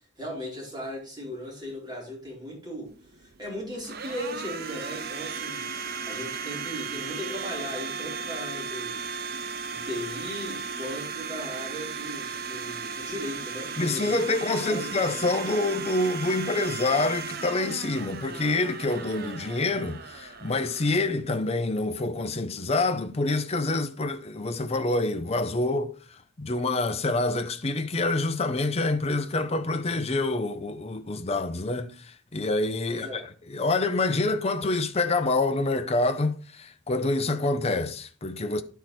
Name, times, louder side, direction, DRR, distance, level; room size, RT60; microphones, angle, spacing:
voice 1, 0.2-2.9 3.2-5.6 6.1-9.0 9.7-15.0 32.9-33.2, equal, 20° right, 4.4 m, -37 dB
Domestic sounds home sounds, 2.9-21.7, right 5 dB, 55° right, 0.7 m, -36 dB
voice 2, 13.8-25.9 26.4-33.2 33.5-38.6, left 2 dB, 35° left, 0.7 m, -27 dB
11.0 x 4.6 x 4.3 m
head